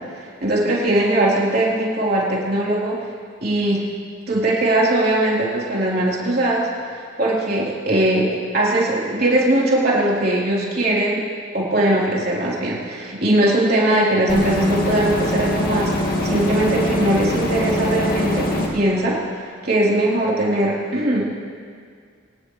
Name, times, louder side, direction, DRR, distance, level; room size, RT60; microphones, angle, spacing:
voice 1, 0.0-3.0 3.4-3.9 4.3-11.2 11.5-15.9 16.2-19.2 19.6-21.2, right 1 dB, 45° right, -5 dB, 3.7 m, -20 dB
sound 1, 14.3-18.7, left 1 dB, 45° left, 2.2 m, -22 dB
24.0 x 18.0 x 3.3 m, 2.1 s
head